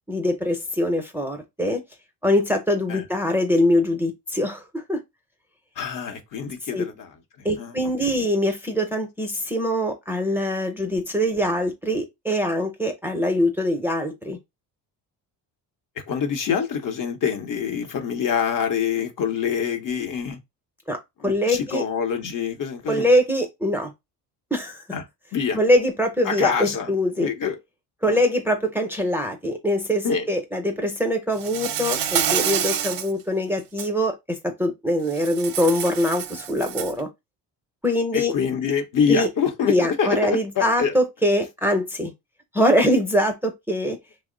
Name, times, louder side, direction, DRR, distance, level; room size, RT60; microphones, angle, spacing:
voice 1, 0.1-1.8 2.2-5.0 6.7-6.8 7.4-14.4 20.9-21.0 21.2-21.8 22.9-23.9 24.5-24.8 25.5-27.3 28.0-37.1 37.8-38.3 39.1-39.3 39.7-42.1 42.5-44.0, equal, 5° right, 0.6 m, -23 dB
voice 2, 5.8-7.7 16.1-20.4 21.2-23.1 24.9-25.0 25.3-25.6 26.3-26.9 27.2-27.6 28.1-28.2 30.0-30.3 38.1-40.9, left 7 dB, 50° left, 0.8 m, -25 dB
Insect, 31.4-33.1 33.6-33.9 35.1-37.0, right 9 dB, 55° right, 0.6 m, -27 dB
2.8 x 2.0 x 3.7 m
cardioid pair, 100°, 40 cm